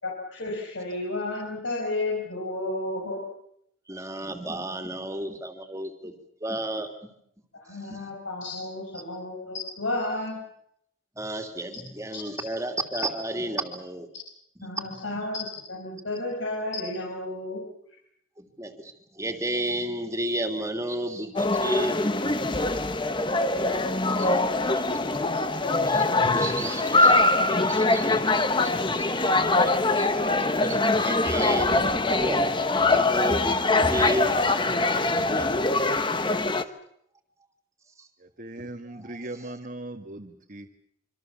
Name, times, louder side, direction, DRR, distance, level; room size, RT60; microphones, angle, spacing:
voice 1, 0.0-3.2 7.6-10.4 14.6-17.6, left 2 dB, 80° left, -2 dB, 6.1 m, -32 dB
voice 2, 3.9-6.1 6.4-6.9 7.9-8.0 11.2-14.1 14.9-15.2 18.4-22.1 24.2-24.4 24.7-29.3 29.6-32.4 32.8-34.4 35.0-35.5 38.0-38.1 38.9-39.2, right 1 dB, 15° right, 5 dB, 2.9 m, -33 dB
sound 1, 21.4-36.6, left 2 dB, 25° left, 1.1 m, -23 dB
voice 3, 35.0-35.9 38.2-40.7, right 1 dB, 45° right, 2 dB, 1.7 m, -40 dB
26.5 x 25.0 x 7.2 m, 0.72 s
head